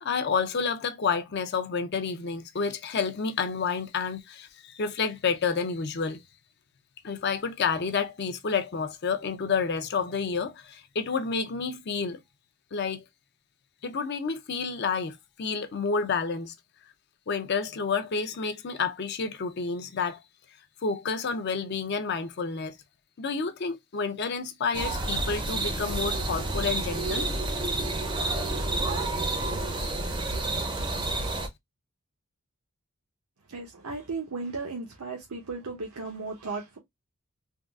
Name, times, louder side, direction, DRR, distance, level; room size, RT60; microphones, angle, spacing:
voice 1, 0.0-6.2 7.0-12.2 12.7-13.0 13.8-16.5 17.3-20.2 20.8-22.8 23.2-27.3, left 5 dB, 50° left, 0.5 m, -29 dB
sound 1, 24.7-31.5, right 2 dB, 20° right, 0.5 m, -29 dB
voice 2, 33.5-36.8, right 3 dB, 80° right, 0.7 m, -35 dB
3.6 x 2.3 x 2.2 m
head